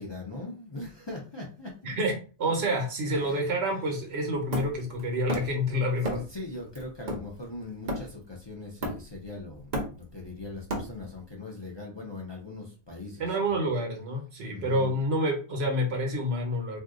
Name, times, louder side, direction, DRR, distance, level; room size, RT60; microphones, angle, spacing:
voice 1, 0.0-1.9 3.1-4.0 5.7-13.6 14.5-14.9, left 2 dB, 30° left, -3 dB, 0.6 m, -41 dB
voice 2, 2.4-6.2 13.2-16.8, equal, 75° right, 2 dB, 1.1 m, -28 dB
Hammer, 4.5-5.6 6.0-6.4 6.7-8.3 8.8-9.3 9.5-11.2, right 1 dB, 45° right, 0.8 m, -34 dB
2.7 x 2.3 x 3.7 m, 0.36 s
omnidirectional pair, 1.1 m